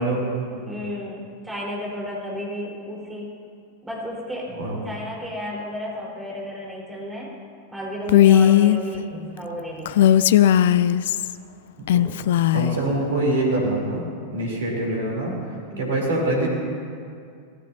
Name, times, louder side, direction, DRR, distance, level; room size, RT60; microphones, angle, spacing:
voice 1, 0.0-0.8 4.5-4.8 9.1-9.3 11.8-12.1 12.5-14.1 14.3-15.3 15.8-16.5, right 2 dB, 65° right, -2 dB, 3.3 m, -25 dB
voice 2, 0.7-3.3 3.8-4.5 4.8-7.3 7.7-10.2 15.7-16.0, equal, 10° right, -5 dB, 4.2 m, -33 dB
Female speech woman speaking, 8.1-8.8 9.9-11.3 11.9-12.8, left 11 dB, 55° left, 0.4 m, -16 dB
24.5 x 16.5 x 2.7 m, 2.3 s
figure-of-eight pair, 90°, 0 cm